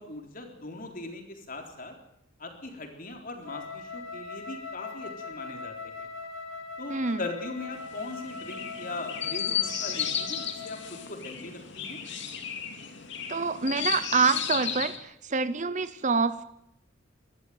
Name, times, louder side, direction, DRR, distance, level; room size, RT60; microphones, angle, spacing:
voice 1, 0.0-1.9 2.4-6.1 6.8-10.8 11.1-12.0, left 2 dB, 45° left, 4 dB, 3.8 m, -40 dB
Wind instrument woodwind instrument, 3.4-11.1, left 4 dB, 85° left, 2.3 m, -41 dB
voice 2, 6.9-7.2 13.3-16.5, right 4 dB, 35° right, 14 dB, 0.8 m, -26 dB
Chirp tweet, 7.7-15.0, left 8 dB, 60° left, 2.5 m, -34 dB
21.5 x 13.5 x 9.4 m, 0.80 s
head